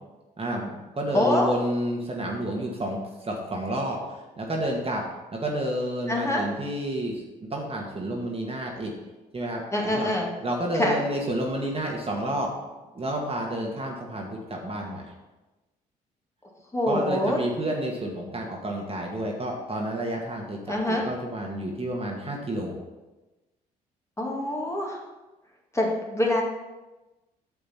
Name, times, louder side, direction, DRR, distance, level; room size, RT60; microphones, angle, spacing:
voice 1, 0.4-5.0 5.3-7.2 7.5-8.9 9.3-10.1 10.4-12.5 12.9-15.0 16.9-22.7, right 1 dB, 30° right, 0 dB, 1.8 m, -30 dB
voice 2, 1.1-1.5 6.1-6.4 9.7-10.3 10.7-11.0 16.7-17.4 20.7-21.0 24.2-25.0 25.7-26.4, left 1 dB, 15° left, -1 dB, 2.1 m, -25 dB
8.7 x 6.6 x 4.3 m, 1.1 s
hypercardioid pair, 45°, 21 cm